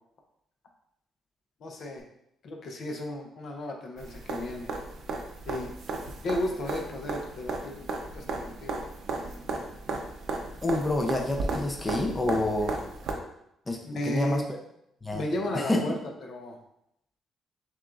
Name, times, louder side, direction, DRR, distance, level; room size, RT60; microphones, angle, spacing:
voice 1, 1.6-2.0 2.4-4.7 5.5-5.7 6.2-7.9 8.1-8.9 13.8-14.5 15.1-16.6, left 1 dB, 60° left, 2 dB, 0.7 m, -34 dB
sound 1, 4.0-13.1 15.1-15.2, right 3 dB, 70° right, 0.6 m, -35 dB
voice 2, 10.6-12.7 13.7-13.8 14.0-14.4 15.0-15.2 15.5-15.8, left 2 dB, 20° left, 2 dB, 0.6 m, -27 dB
7.1 x 2.5 x 2.5 m, 0.78 s
cardioid pair, 90°, 0 cm